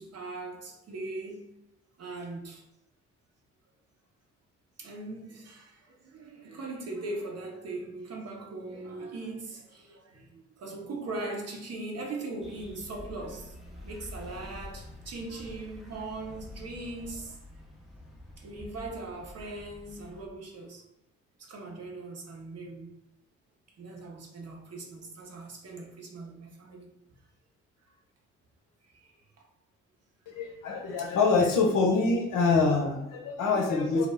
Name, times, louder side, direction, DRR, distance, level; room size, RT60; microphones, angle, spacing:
voice 1, 0.0-1.5 2.0-2.6 4.8-17.4 18.4-20.8 21.4-22.9 23.8-26.9 28.9-29.1, right 2 dB, 45° right, 0.7 m, -40 dB
sound 1, 12.4-20.3, left 2 dB, ahead, 0.6 m, -47 dB
voice 2, 30.3-34.1, left 4 dB, 60° left, 0.7 m, -25 dB
2.3 x 2.0 x 3.4 m
hypercardioid pair, 45°, 36 cm